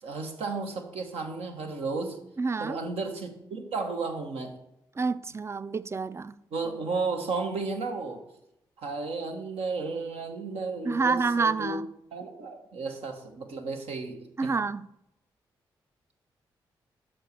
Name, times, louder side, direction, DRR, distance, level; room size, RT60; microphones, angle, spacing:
voice 1, 0.0-2.2 2.6-4.5 6.5-8.2 8.8-14.5, right 3 dB, 75° right, 1.1 m, -33 dB
voice 2, 2.4-2.8 5.0-6.3 10.8-11.9 14.4-14.9, right 4 dB, 25° right, 0.4 m, -28 dB
6.0 x 4.4 x 6.4 m
hypercardioid pair, 40°, 10 cm